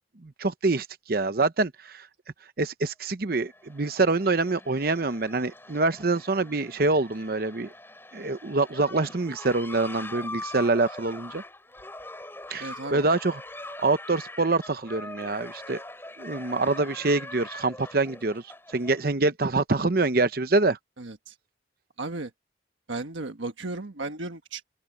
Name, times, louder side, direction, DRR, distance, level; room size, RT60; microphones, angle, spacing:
voice 1, 0.2-2.1 2.6-7.7 8.1-11.4 12.5-13.4 13.8-15.8 16.2-18.4 18.7-20.8, right 3 dB, 50° right, 0.8 m, -25 dB
sound 1, 3.4-19.0, left 2 dB, 10° left, 7.6 m, -42 dB
voice 2, 12.6-13.0 21.0-21.3 22.0-22.3 22.9-24.6, right 2 dB, 90° right, 1.4 m, -35 dB
head